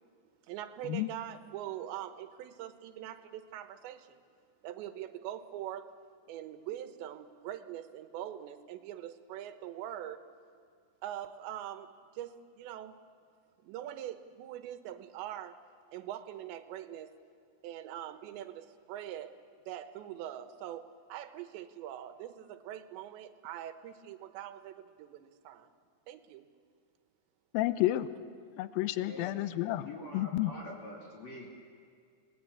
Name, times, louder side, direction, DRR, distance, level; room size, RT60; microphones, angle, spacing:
voice 1, 0.5-4.2 4.6-5.9 6.3-10.3 11.0-13.0 13.6-15.6 15.9-17.1 17.6-19.4 19.7-25.7 26.1-26.4, right 11 dB, 85° right, 10 dB, 3.3 m, -43 dB
voice 2, 27.5-28.1 28.6-29.9 30.1-30.5, left 15 dB, 75° left, 13 dB, 2.2 m, -30 dB
voice 3, 29.8-31.5, left 1 dB, 40° left, -2 dB, 3.7 m, -45 dB
30.0 x 19.0 x 8.6 m, 2.2 s
omnidirectional pair, 5.0 m